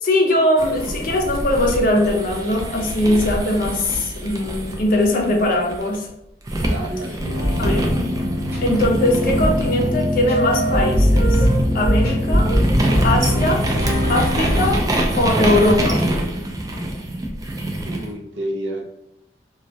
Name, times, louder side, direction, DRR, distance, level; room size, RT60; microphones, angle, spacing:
voice 1, 0.0-6.1 7.6-7.9 8.6-11.4 11.7-12.5 13.0-13.7 14.1-14.8 15.2-16.0, left 1 dB, 50° left, 1 dB, 0.5 m, -20 dB
sound 1, 0.6-6.0 6.5-18.1, right 1 dB, 20° right, 0.3 m, -25 dB
voice 2, 6.6-7.7 17.8-18.9, right 1 dB, 90° right, 3 dB, 0.4 m, -30 dB
sound 2, 7.2-14.8, equal, 55° right, 0.8 m, -20 dB
2.2 x 2.1 x 2.6 m, 0.82 s
head